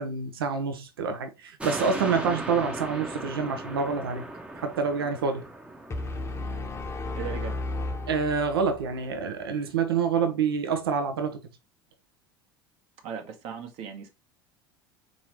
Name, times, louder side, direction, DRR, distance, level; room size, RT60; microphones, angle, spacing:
voice 1, 0.0-4.3 4.6-5.5 8.1-11.4, right 5 dB, 80° right, 0.7 m, -27 dB
sound 1, 1.6-8.3 8.7-8.8, right 1 dB, 10° right, 0.7 m, -38 dB
sound 2, 5.9-9.0, left 2 dB, 20° left, 0.8 m, -33 dB
voice 2, 7.2-7.6 13.0-14.1, right 7 dB, 55° right, 1.0 m, -37 dB
3.9 x 3.0 x 3.0 m
hypercardioid pair, 75°, 12 cm